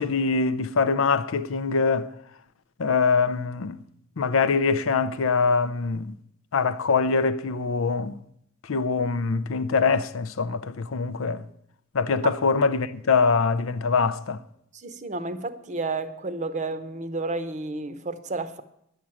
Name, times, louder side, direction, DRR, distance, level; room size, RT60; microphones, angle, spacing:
voice 1, 0.0-2.1 2.8-3.8 4.2-6.2 6.5-8.2 8.7-11.4 11.9-14.4, left 4 dB, 75° left, 0.6 m, -23 dB
voice 2, 14.7-18.6, right 3 dB, 35° right, 0.7 m, -31 dB
11.0 x 7.5 x 8.7 m
head